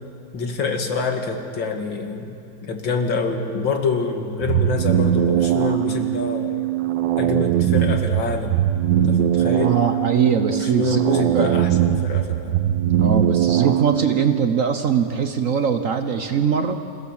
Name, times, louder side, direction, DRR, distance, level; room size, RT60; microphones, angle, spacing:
voice 1, 0.3-2.4 2.6-6.6 7.2-8.6 9.1-9.8 10.4-12.6, left 4 dB, 80° left, 4 dB, 2.5 m, -26 dB
sound 1, 4.4-14.4, right 11 dB, 75° right, 1.5 m, -21 dB
voice 2, 9.4-11.6 13.0-16.8, right 6 dB, 50° right, 7 dB, 1.1 m, -22 dB
27.0 x 16.0 x 7.3 m, 2.5 s
omnidirectional pair, 2.0 m